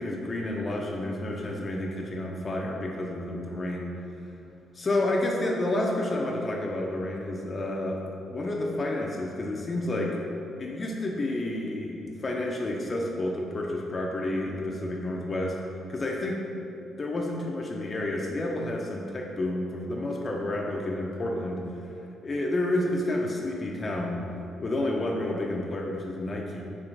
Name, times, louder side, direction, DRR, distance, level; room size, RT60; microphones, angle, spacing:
voice 1, 0.0-3.9 4.7-10.2 10.6-15.6 15.9-16.4 17.0-21.9 22.2-24.2 24.6-26.6, left 1 dB, 35° left, -1 dB, 0.4 m, -30 dB
4.4 x 2.7 x 2.5 m, 2.6 s
cardioid pair, 90°, 0 cm